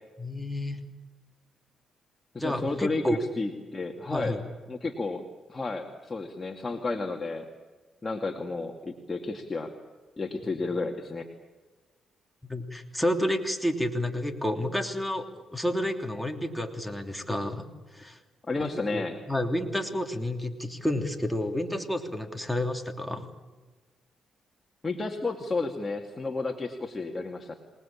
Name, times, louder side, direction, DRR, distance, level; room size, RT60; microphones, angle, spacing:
voice 1, 0.2-0.8 2.4-3.2 4.1-4.4 12.4-15.3 15.5-17.6 17.9-18.2 18.6-23.3, left 1 dB, ahead, 3 dB, 3.1 m, -30 dB
voice 2, 2.3-4.4 4.7-7.5 8.0-9.7 10.2-11.3 18.5-19.2 24.8-27.5, left 3 dB, 25° left, 2 dB, 2.4 m, -32 dB
27.0 x 19.5 x 8.7 m, 1.3 s
cardioid pair, 80°, 0 cm